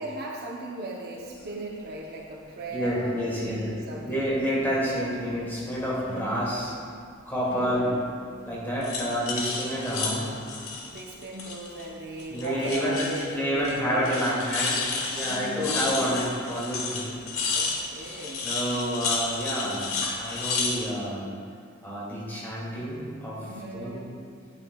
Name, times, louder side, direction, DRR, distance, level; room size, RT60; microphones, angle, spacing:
voice 1, 0.0-3.0 3.3-4.3 7.4-8.0 10.8-14.2 15.2-16.1 17.5-18.5 23.4-24.2, right 1 dB, 50° right, -1 dB, 0.7 m, -38 dB
sound 1, 1.2-1.4 2.9-3.1 3.5-4.4 4.9-5.8 7.5-8.0 8.8-11.9 12.2-13.3 13.6-13.8 14.0-20.8, left 4 dB, 80° left, 1.2 m, -32 dB
voice 2, 2.7-3.7 4.0-6.8 7.3-7.9 8.4-10.4 12.3-13.0 13.3-17.1 18.0-18.2 18.4-19.9 20.2-21.3 21.8-23.4 23.7-24.0, equal, 10° left, -7 dB, 2.1 m, -29 dB
9.9 x 8.7 x 2.3 m, 2.2 s
head